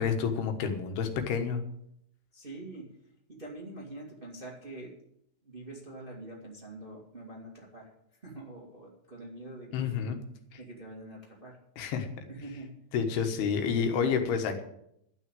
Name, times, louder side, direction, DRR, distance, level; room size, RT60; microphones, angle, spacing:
voice 1, 0.0-1.6 9.7-10.2 11.8-12.1 12.9-14.6, left 6 dB, 80° left, 6 dB, 3.3 m, -29 dB
voice 2, 2.3-2.9 3.3-4.9 5.4-7.9 8.2-9.9 10.6-11.6 12.3-12.7, right 2 dB, 20° right, -2 dB, 1.7 m, -45 dB
12.0 x 6.1 x 9.0 m, 0.74 s
omnidirectional pair, 4.5 m